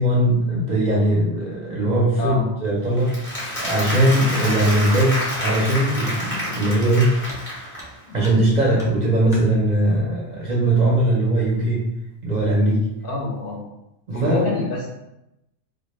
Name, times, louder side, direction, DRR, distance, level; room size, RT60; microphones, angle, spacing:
voice 1, 0.0-3.2 3.6-7.2 8.1-11.9 12.2-12.9 14.1-14.5, right 1 dB, 50° right, -5 dB, 0.6 m, -20 dB
voice 2, 2.2-2.5 4.6-4.7 8.0-8.2 13.0-13.6 14.1-14.9, left 2 dB, 60° left, -2 dB, 0.7 m, -26 dB
Applause, 3.0-8.0, equal, 10° left, 0.8 m, -28 dB
sound 1, 7.3-7.5 7.8-8.5 8.8-9.5 10.7-10.8 11.3-11.4 12.1-12.5 12.8-13.2, equal, 5° right, 0.3 m, -41 dB
2.1 x 2.1 x 3.0 m, 0.87 s
omnidirectional pair, 1.1 m